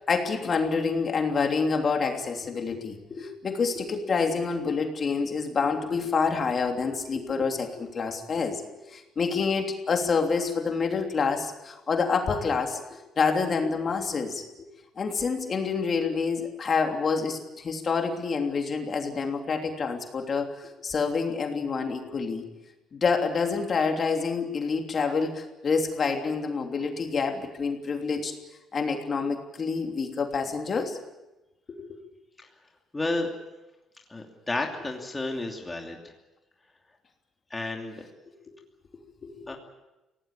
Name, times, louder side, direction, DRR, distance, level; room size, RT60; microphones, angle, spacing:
voice 1, 0.1-12.8 13.2-14.7 15.0-22.4 22.9-28.3 28.7-31.0 31.7-32.0 39.2-39.6, left 5 dB, 40° left, 3 dB, 3.1 m, -27 dB
voice 2, 32.9-33.3 34.1-36.0 37.5-38.0 39.5-39.6, left 2 dB, 15° left, 1 dB, 2.8 m, -31 dB
25.0 x 18.0 x 8.6 m, 1.0 s
cardioid pair, 120°, 0 cm